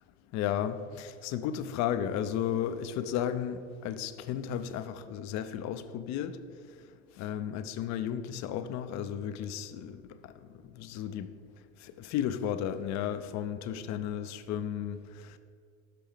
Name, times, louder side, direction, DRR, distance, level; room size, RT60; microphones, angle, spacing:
voice 1, 0.3-6.4 7.2-11.3 11.8-15.4, left 9 dB, 45° left, 0.5 m, -34 dB
6.0 x 5.8 x 5.0 m
hypercardioid pair, 80°, 40 cm